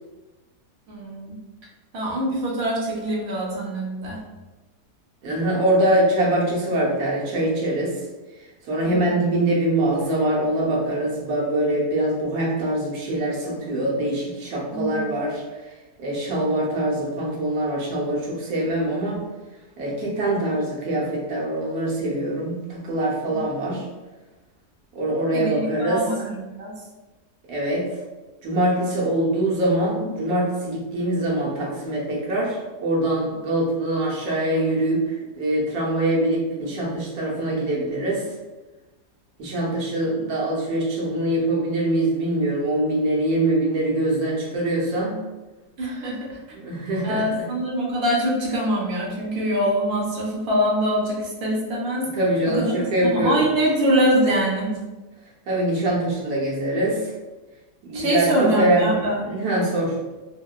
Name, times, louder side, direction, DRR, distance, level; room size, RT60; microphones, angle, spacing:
voice 1, 0.9-1.4 1.9-4.2 8.8-9.2 14.7-15.0 23.3-23.4 25.3-26.7 45.8-46.4 47.0-52.0 52.6-52.7 53.0-54.7 57.9-59.2, equal, 60° right, -3 dB, 0.7 m, -24 dB
voice 2, 5.2-8.0 8.7-15.4 16.0-19.2 19.8-23.8 24.9-26.0 27.5-27.9 28.4-38.2 39.4-45.2 46.5-47.5 52.1-53.4 55.5-57.1 57.8-60.0, right 1 dB, 75° right, -4 dB, 1.2 m, -23 dB
2.8 x 2.1 x 2.3 m, 1.2 s
omnidirectional pair, 1.7 m